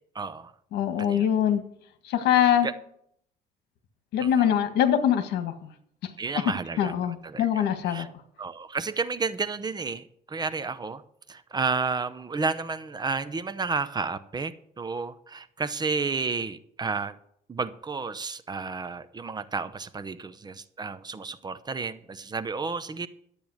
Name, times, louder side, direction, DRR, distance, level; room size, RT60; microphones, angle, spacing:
voice 1, 0.1-0.5 1.0-1.3 2.6-2.7 4.2-4.5 6.2-6.9 7.2-8.1 8.4-11.0 11.3-17.1 17.5-23.1, right 4 dB, 25° right, 13 dB, 0.8 m, -31 dB
voice 2, 0.7-1.6 2.0-2.7 4.1-5.5 6.8-8.1, left 9 dB, 80° left, 9 dB, 1.7 m, -23 dB
12.5 x 8.7 x 6.4 m, 0.69 s
cardioid pair, 110°, 17 cm